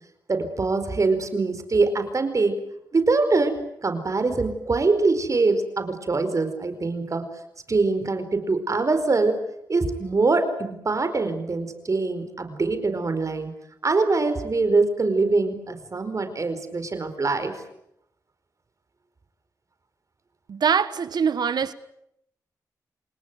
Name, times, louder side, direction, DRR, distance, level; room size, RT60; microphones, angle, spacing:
voice 1, 0.3-2.6 2.9-7.3 7.7-9.4 9.7-13.5 13.8-17.5, right 3 dB, 50° right, 4.7 m, -23 dB
voice 2, 20.5-21.7, right 6 dB, 75° right, 1.4 m, -23 dB
29.0 x 19.0 x 9.3 m
cardioid pair, 60°, 7 cm